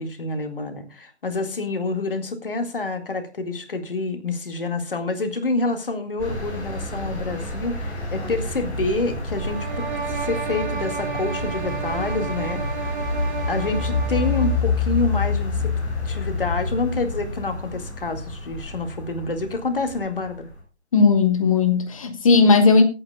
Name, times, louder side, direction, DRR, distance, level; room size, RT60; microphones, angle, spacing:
voice 1, 0.0-13.0 13.5-15.7 16.0-20.5, left 3 dB, 55° left, 2.0 m, -27 dB
sound 1, 6.2-20.6, left 3 dB, 10° left, 1.9 m, -28 dB
sound 2, 9.3-14.7, right 6 dB, 45° right, 1.6 m, -32 dB
voice 2, 20.9-22.8, left 4 dB, 30° left, 1.3 m, -16 dB
25.0 x 8.7 x 2.3 m
figure-of-eight pair, 145°, 33 cm